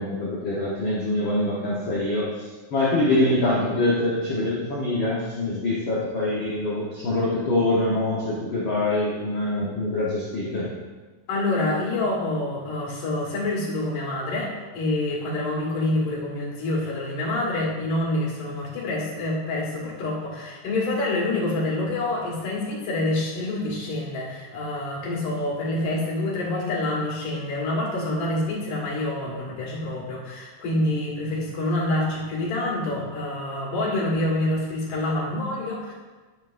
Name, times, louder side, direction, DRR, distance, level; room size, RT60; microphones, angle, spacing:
voice 1, 0.0-10.7, left 2 dB, 55° left, -6 dB, 1.5 m, -24 dB
voice 2, 11.3-35.9, left 2 dB, 75° left, -4 dB, 3.4 m, -27 dB
10.0 x 8.6 x 2.6 m, 1.3 s
omnidirectional pair, 3.8 m